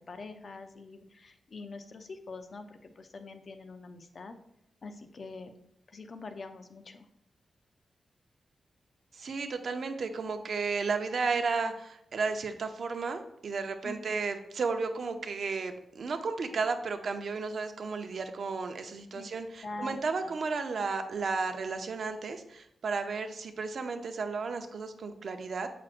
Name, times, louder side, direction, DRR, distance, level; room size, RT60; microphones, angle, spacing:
voice 1, 0.0-4.4 4.8-5.5 5.9-7.1 13.8-14.1 19.1-19.3 19.6-20.4, left 3 dB, 50° left, 7 dB, 0.6 m, -44 dB
voice 2, 9.1-25.7, right 4 dB, 60° right, 7 dB, 0.7 m, -33 dB
7.5 x 5.9 x 2.5 m, 0.79 s
wide cardioid pair, 125°, 0 cm